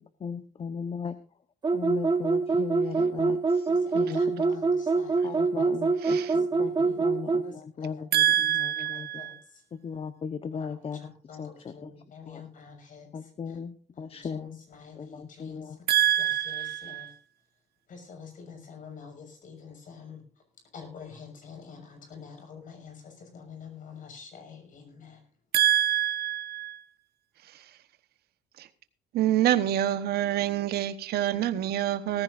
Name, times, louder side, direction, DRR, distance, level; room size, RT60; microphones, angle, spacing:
voice 1, 0.2-1.2 1.7-4.6 5.2-9.2 9.7-11.1 11.4-11.9 12.3-12.5 13.1-14.6 15.0-15.8, left 6 dB, 35° left, 1.0 m, -37 dB
sound 1, 1.6-7.5, right 4 dB, 25° right, 1.3 m, -25 dB
voice 2, 3.7-5.7 6.2-7.1 7.4-8.3 8.9-9.6 10.6-13.6 14.1-17.1 17.9-20.2 20.7-25.2, left 6 dB, 50° left, 6.3 m, -47 dB
voice 3, 6.0-6.3 8.1-9.4 15.9-17.2 25.5-26.8 27.4-27.7 28.6-28.7 29.1-32.2, right 12 dB, 70° right, 1.2 m, -26 dB
18.5 x 15.0 x 2.6 m
cardioid pair, 110°, 17 cm